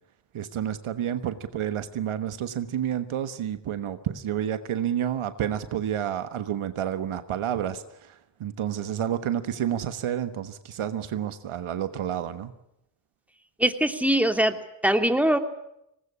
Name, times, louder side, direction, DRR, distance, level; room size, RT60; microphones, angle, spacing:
voice 1, 0.3-12.5, right 10 dB, 85° right, 11 dB, 1.4 m, -30 dB
voice 2, 13.6-15.4, right 1 dB, 5° right, 7 dB, 2.7 m, -22 dB
19.5 x 19.5 x 10.0 m, 0.81 s
cardioid pair, 45°, 48 cm